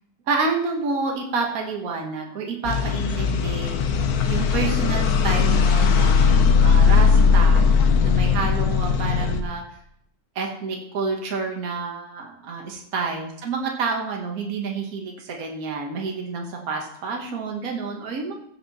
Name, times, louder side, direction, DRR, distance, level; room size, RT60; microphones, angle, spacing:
voice 1, 0.3-3.8 4.3-7.7 8.0-9.6 10.4-18.4, right 4 dB, 55° right, 1 dB, 1.7 m, -29 dB
sound 1, 2.6-9.4, left 5 dB, 65° left, 1.3 m, -18 dB
15.0 x 6.6 x 4.2 m, 0.70 s
omnidirectional pair, 1.8 m